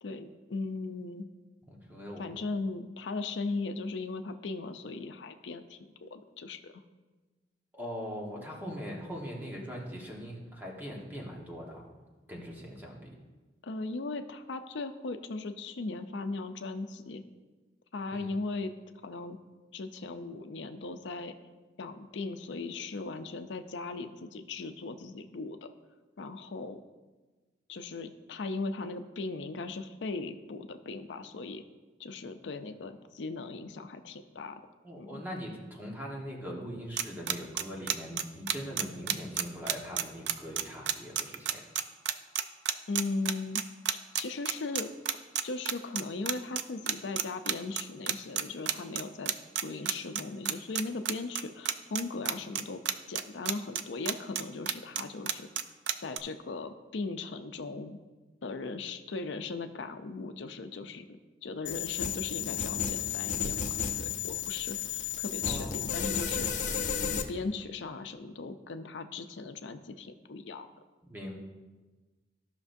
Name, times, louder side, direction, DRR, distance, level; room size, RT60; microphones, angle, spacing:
voice 1, 0.0-1.3 2.2-6.8 13.6-17.2 17.9-18.7 19.0-19.4 19.7-21.4 21.8-25.7 26.2-26.8 27.7-31.6 32.0-34.6 35.0-35.2 42.9-43.6 44.2-44.9 45.4-49.3 49.6-52.8 53.1-55.5 56.0-58.0 58.4-66.6 67.0-70.7, left 3 dB, 85° left, 8 dB, 0.5 m, -38 dB
voice 2, 1.7-2.4 7.7-11.9 12.3-13.1 18.1-18.4 34.8-41.6 65.4-65.9 71.1-71.4, equal, 10° right, -2 dB, 1.4 m, -41 dB
sound 1, 37.0-56.2, right 10 dB, 70° right, 0.4 m, -30 dB
sound 2, 61.7-67.2, left 8 dB, 45° left, 0.7 m, -33 dB
14.5 x 6.0 x 2.7 m, 1.2 s
head